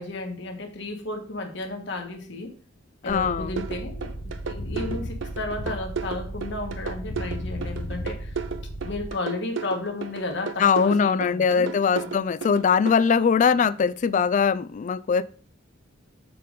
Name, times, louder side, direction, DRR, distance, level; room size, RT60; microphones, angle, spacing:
voice 1, 0.0-2.5 3.0-4.1 4.5-8.3 8.8-12.1, left 2 dB, 70° left, 1.4 m, -33 dB
voice 2, 3.0-3.6 10.6-15.2, left 6 dB, 40° left, 0.3 m, -21 dB
sound 1, 3.1-9.1, equal, 90° left, 1.0 m, -35 dB
sound 2, 3.6-13.0, right 5 dB, 85° right, 0.6 m, -33 dB
6.7 x 3.9 x 5.1 m
head